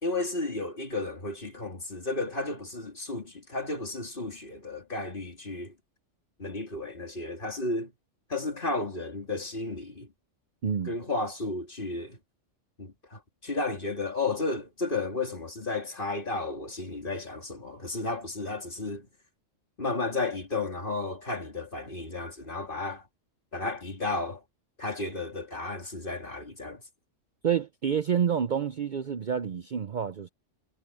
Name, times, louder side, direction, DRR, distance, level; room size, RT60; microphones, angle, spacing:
voice 1, 0.0-5.7 6.4-7.9 8.3-10.1 10.8-12.2 12.8-19.1 19.8-23.0 23.5-24.4 24.8-26.8, left 3 dB, 45° left, 3.1 m, -33 dB
voice 2, 10.6-11.0 27.4-30.3, right 7 dB, 50° right, 0.7 m, -28 dB
omnidirectional pair, 1.3 m